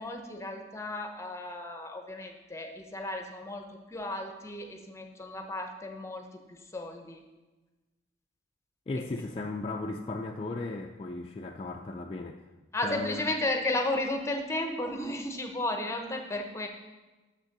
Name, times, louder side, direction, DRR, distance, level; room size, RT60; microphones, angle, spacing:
voice 1, 0.0-7.2 9.1-9.2 12.7-16.7, left 2 dB, 15° left, 4 dB, 0.7 m, -34 dB
voice 2, 8.9-12.4 12.8-13.3, left 2 dB, 30° left, 2 dB, 0.3 m, -36 dB
6.7 x 5.4 x 5.8 m, 1.2 s
head